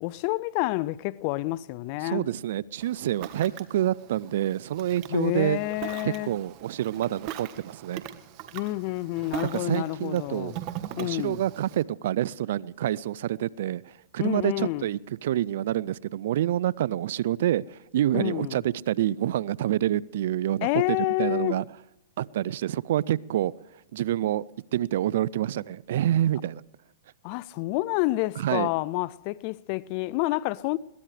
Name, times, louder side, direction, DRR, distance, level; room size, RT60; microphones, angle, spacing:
voice 1, 0.0-2.3 5.1-6.3 8.5-10.6 11.0-11.4 14.2-14.8 18.1-18.6 20.6-21.6 27.2-30.8, left 19 dB, 50° left, 0.5 m, -28 dB
voice 2, 2.0-5.6 6.0-8.0 9.4-10.5 11.0-21.7 22.2-23.5 23.9-24.4 24.7-26.6 28.4-28.7, right 12 dB, 70° right, 0.4 m, -27 dB
Ocean, 2.8-11.8, right 11 dB, 50° right, 1.3 m, -41 dB
22.0 x 18.0 x 3.3 m
hypercardioid pair, 115°, 0 cm